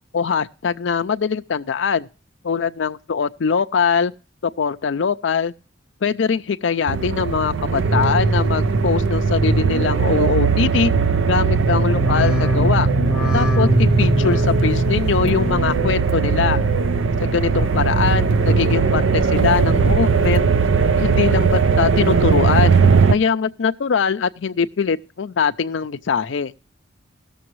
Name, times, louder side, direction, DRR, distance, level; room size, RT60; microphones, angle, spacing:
voice 1, 0.1-2.1 2.4-4.1 4.4-5.5 6.0-10.9 11.3-12.9 13.3-16.6 17.2-20.5 21.0-22.8 23.1-26.5, left 6 dB, 65° left, 0.5 m, -22 dB
sound 1, 6.9-23.1, right 4 dB, 80° right, 0.5 m, -18 dB
sound 2, 11.8-17.1 17.4-18.1 18.5-19.2 19.6-20.3 20.7-21.4 21.8-22.4 23.0-23.1, left 1 dB, 5° right, 1.4 m, -26 dB
18.0 x 6.9 x 3.0 m
head